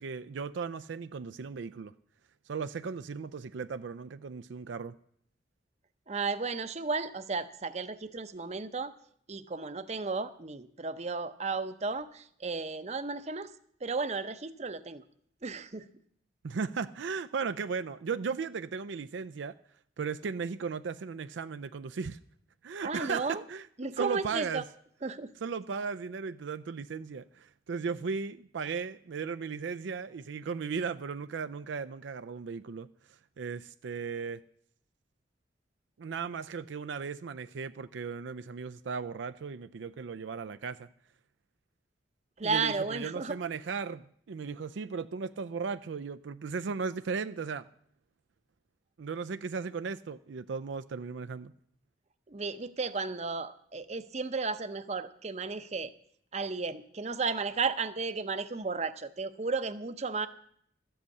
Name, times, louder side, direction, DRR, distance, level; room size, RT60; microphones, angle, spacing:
voice 1, 0.0-1.9 2.5-4.9 16.4-19.6 20.0-22.2 22.6-24.6 25.4-34.4 36.0-40.9 42.4-47.7 49.0-51.5, right 5 dB, 75° right, 12 dB, 0.4 m, -36 dB
voice 2, 6.1-8.9 9.3-13.5 13.8-15.0 15.4-15.9 22.8-23.4 23.8-24.6 25.0-25.3 42.4-43.4 52.3-55.9 56.3-60.3, right 4 dB, 35° right, 11 dB, 0.7 m, -34 dB
13.5 x 7.9 x 8.3 m, 0.65 s
head